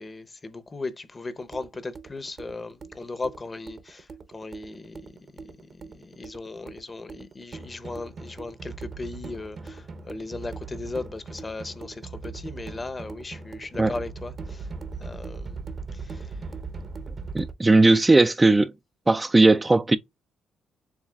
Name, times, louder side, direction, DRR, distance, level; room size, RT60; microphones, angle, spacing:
voice 1, 0.0-5.0 5.3-14.7 15.0-15.6 15.9-16.4, left 3 dB, 25° left, 0.8 m, -37 dB
sound 1, 1.3-17.5, right 4 dB, 45° right, 0.7 m, -39 dB
voice 2, 17.3-18.7 19.1-20.0, right 2 dB, 20° right, 0.3 m, -18 dB
7.0 x 2.4 x 2.3 m
cardioid pair, 90°, 0 cm